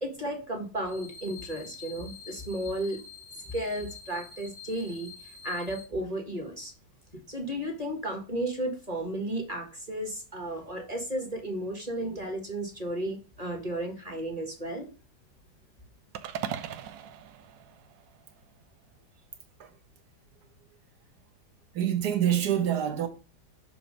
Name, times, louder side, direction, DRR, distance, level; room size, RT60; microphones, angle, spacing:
voice 1, 0.0-3.0 3.5-6.7 7.3-14.9, right 1 dB, 20° right, 1.7 m, -34 dB
sound 1, 0.9-5.8, left 6 dB, 45° right, 2.0 m, -47 dB
sound 2, 16.1-18.5, right 9 dB, 85° right, 1.3 m, -39 dB
voice 2, 21.7-23.1, right 10 dB, 65° right, 1.6 m, -26 dB
6.9 x 3.2 x 5.1 m
omnidirectional pair, 1.9 m